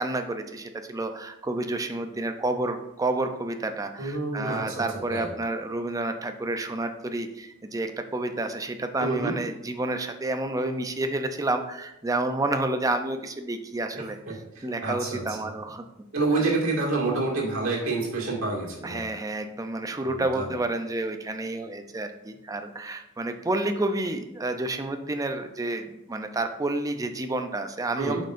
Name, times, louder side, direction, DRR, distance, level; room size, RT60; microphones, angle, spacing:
voice 1, 0.0-15.8 18.8-28.2, right 2 dB, 15° right, 7 dB, 0.5 m, -30 dB
voice 2, 4.0-5.3 9.0-9.3 13.9-15.5 16.1-19.0 20.0-20.5 28.0-28.2, right 3 dB, 75° right, -4 dB, 2.2 m, -28 dB
8.8 x 5.5 x 2.6 m, 0.88 s
head